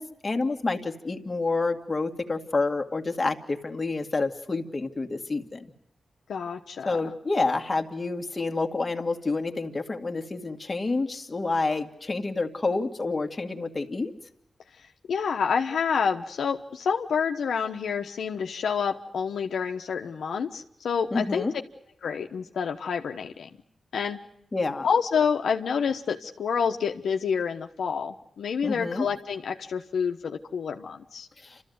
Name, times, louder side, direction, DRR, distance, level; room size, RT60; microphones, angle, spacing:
voice 1, 0.0-5.7 6.9-14.1 21.1-21.5 24.5-24.9 28.6-29.1, left 3 dB, 30° left, 4 dB, 1.9 m, -28 dB
voice 2, 6.3-7.1 15.1-21.5 22.0-23.5 23.9-24.2 24.8-31.3, left 6 dB, 85° left, 4 dB, 1.1 m, -28 dB
28.5 x 13.5 x 9.4 m, 0.78 s
cardioid pair, 80°, 0 cm